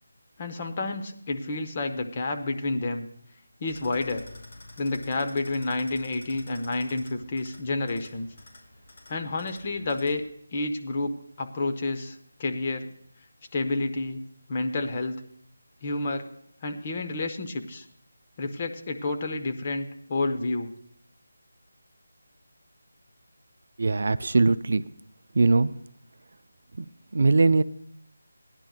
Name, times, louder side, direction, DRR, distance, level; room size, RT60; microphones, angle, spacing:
voice 1, 0.4-3.1 3.6-4.2 4.8-8.3 9.1-10.2 10.5-12.9 13.5-14.2 14.5-15.2 15.8-16.3 16.6-17.8 18.4-20.7, left 2 dB, 30° left, 5 dB, 0.8 m, -29 dB
sound 1, 3.7-10.3, left 1 dB, 50° left, 3.1 m, -49 dB
voice 2, 23.8-24.8 25.3-25.7 26.8-26.9 27.1-27.6, right 3 dB, 60° right, 14 dB, 0.3 m, -21 dB
17.0 x 10.5 x 2.4 m, 0.67 s
figure-of-eight pair, 165°, 0 cm